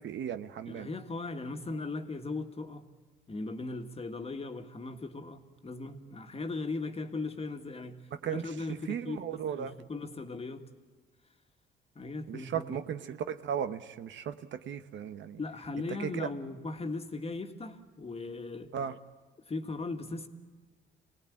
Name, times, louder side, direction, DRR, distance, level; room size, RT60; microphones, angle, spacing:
voice 1, 0.0-0.9 8.2-9.7 12.3-15.4 16.0-16.3 18.7-19.0, right 8 dB, 70° right, 1.0 m, -36 dB
voice 2, 0.7-2.9 3.3-9.2 9.5-10.6 12.0-12.8 15.4-18.7 19.4-20.3, left 3 dB, 30° left, 1.9 m, -38 dB
26.0 x 18.5 x 8.7 m
cardioid pair, 90°, 20 cm